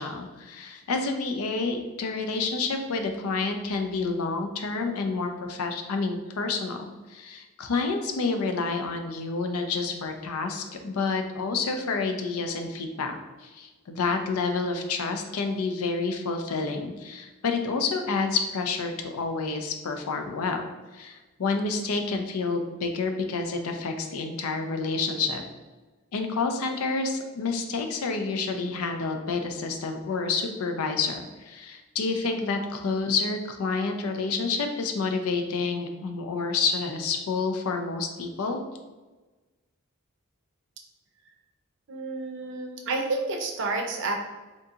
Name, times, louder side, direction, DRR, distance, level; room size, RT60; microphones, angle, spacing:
voice 1, 0.0-13.2 13.4-20.6 20.9-25.4 26.1-38.6, left 4 dB, 75° left, 5 dB, 0.5 m, -29 dB
voice 2, 41.9-44.1, right 3 dB, 55° right, 2 dB, 0.5 m, -30 dB
3.8 x 2.7 x 2.4 m, 1.2 s
head